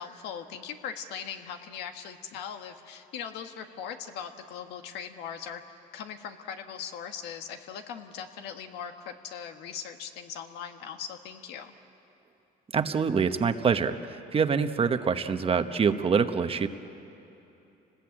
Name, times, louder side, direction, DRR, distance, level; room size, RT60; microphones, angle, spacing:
voice 1, 0.0-5.6 5.9-11.7, left 7 dB, 85° left, 6 dB, 1.6 m, -40 dB
voice 2, 12.7-16.7, right 6 dB, 35° right, 9 dB, 1.1 m, -25 dB
29.0 x 20.0 x 8.7 m, 3.0 s
cardioid pair, 110°, 17 cm